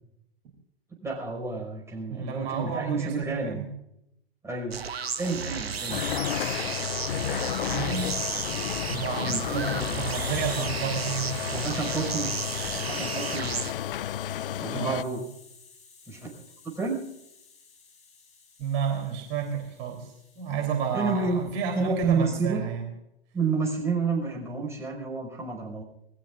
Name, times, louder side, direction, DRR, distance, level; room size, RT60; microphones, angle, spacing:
voice 1, 1.0-3.7 4.4-4.8 5.2-6.0 9.3-10.1 11.5-12.3 12.7-13.5 14.6-15.2 16.1-16.4 16.7-17.0 20.9-21.5 21.7-22.6 23.3-25.8, right 4 dB, 10° right, -1 dB, 5.5 m, -30 dB
voice 2, 2.1-3.7 7.7-8.1 8.9-11.5 12.2-12.3 14.7-15.2 18.6-22.8, right 6 dB, 40° right, 2 dB, 3.6 m, -31 dB
sound 1, 4.7-13.7, right 6 dB, 75° right, 1.2 m, -33 dB
Hiss, 5.7-22.3, left 5 dB, 20° left, 5.6 m, -53 dB
sound 2, 5.9-15.0, left 11 dB, 60° left, 0.6 m, -32 dB
28.0 x 19.0 x 2.5 m, 0.81 s
figure-of-eight pair, 105°, 30 cm